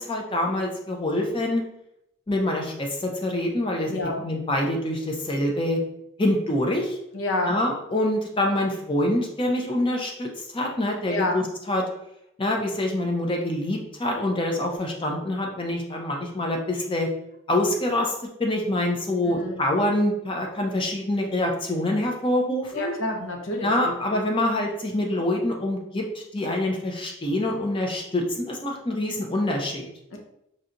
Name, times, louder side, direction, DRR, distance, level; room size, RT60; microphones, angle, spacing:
voice 1, 0.0-1.6 2.3-3.9 4.2-5.8 6.2-7.0 7.5-11.8 12.4-17.1 17.5-22.9 23.6-29.9, left 1 dB, 25° left, 1 dB, 0.5 m, -25 dB
voice 2, 3.9-4.2 7.1-7.5 11.1-11.4 19.2-19.6 22.7-24.2 30.1-30.2, left 2 dB, 70° left, 1 dB, 0.7 m, -29 dB
4.6 x 2.7 x 2.6 m, 0.80 s
head